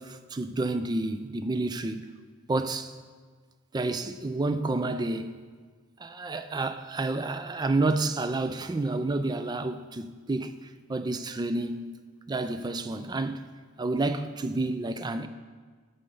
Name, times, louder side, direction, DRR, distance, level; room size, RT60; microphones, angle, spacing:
voice 1, 0.0-2.1 2.5-3.0 3.7-5.4 6.0-11.9 12.3-13.4 13.8-15.3, right 2 dB, 20° right, 0.3 m, -30 dB
8.6 x 5.6 x 5.3 m
head